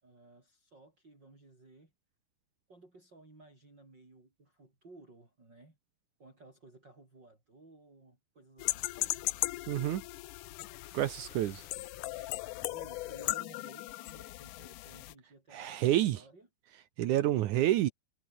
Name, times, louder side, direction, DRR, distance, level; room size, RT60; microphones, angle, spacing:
voice 1, 0.0-1.9 2.7-5.8 6.2-9.3 12.7-16.5 17.3-17.9, right 2 dB, 25° right, 7.2 m, -57 dB
sound 1, 8.6-15.1, left 18 dB, 80° left, 1.9 m, -37 dB
voice 2, 9.7-10.0 10.9-11.6 15.5-16.2 17.0-17.9, right 13 dB, 70° right, 2.0 m, -28 dB
omnidirectional pair, 4.3 m